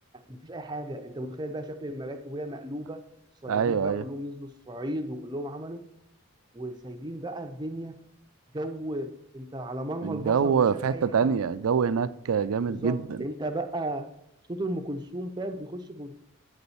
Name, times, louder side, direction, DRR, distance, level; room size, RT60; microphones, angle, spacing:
voice 1, 0.1-3.1 3.4-5.9 6.5-8.0 8.5-11.4 12.7-14.1 14.5-16.1, right 1 dB, 20° right, 0.5 m, -35 dB
voice 2, 3.5-4.0 10.0-13.0, right 6 dB, 85° right, 0.4 m, -25 dB
8.7 x 4.1 x 6.9 m
head